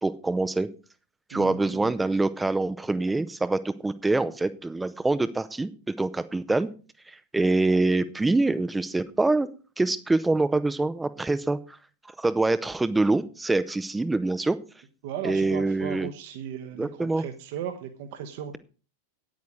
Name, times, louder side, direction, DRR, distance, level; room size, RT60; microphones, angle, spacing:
voice 1, 0.0-0.7 1.3-6.7 7.1-9.5 9.8-11.8 12.2-14.6 15.2-16.1 16.8-17.2, right 2 dB, 10° right, 15 dB, 0.7 m, -25 dB
voice 2, 1.3-1.9 15.0-18.6, right 9 dB, 50° right, 7 dB, 1.1 m, -36 dB
9.5 x 9.0 x 5.1 m, 0.36 s
figure-of-eight pair, 90°, 0 cm